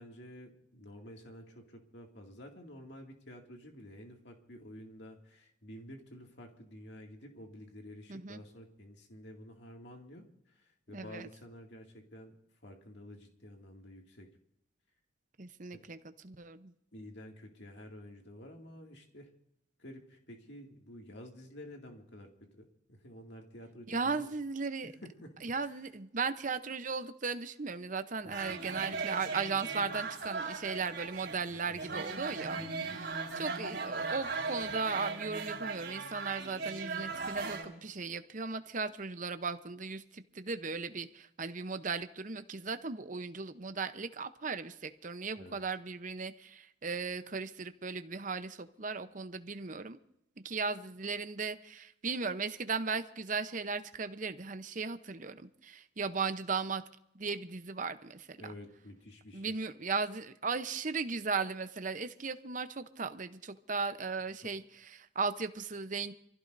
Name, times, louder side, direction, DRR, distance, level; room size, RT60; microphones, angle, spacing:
voice 1, 0.0-10.2 10.6-12.3 12.6-14.3 15.7-15.8 16.9-19.3 19.8-24.3 25.0-25.3 28.2-29.0 31.5-32.2 32.6-33.0 45.3-45.6 58.4-59.5 64.4-64.5, left 1 dB, 60° left, 1 dB, 2.3 m, -51 dB
voice 2, 8.1-8.4 10.9-11.3 15.4-16.0 16.2-16.7 23.9-24.9 25.4-50.0 50.4-56.8 57.1-58.5 59.3-66.1, right 4 dB, 40° right, 10 dB, 0.8 m, -37 dB
sound 1, 28.3-37.6, right 4 dB, 60° right, 4.5 m, -38 dB
26.5 x 16.0 x 2.7 m, 0.78 s
head